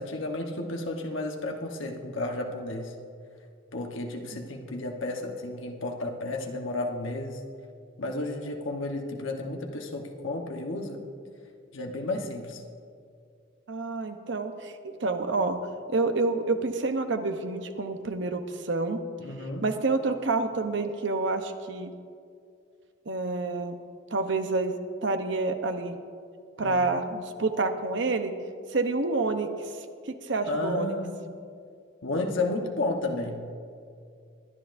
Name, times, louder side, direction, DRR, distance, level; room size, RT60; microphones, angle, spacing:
voice 1, 0.0-2.9 3.7-7.4 8.0-11.0 11.7-12.6 19.2-19.7 26.6-26.8 30.5-31.2 32.0-33.5, left 2 dB, 75° left, 2 dB, 1.1 m, -32 dB
voice 2, 13.7-15.6 15.9-19.0 19.6-21.9 23.1-23.8 24.1-26.0 26.6-28.3 28.7-29.5 30.1-30.9, right 3 dB, 65° right, 7 dB, 0.8 m, -28 dB
22.0 x 10.5 x 2.6 m, 2.3 s
head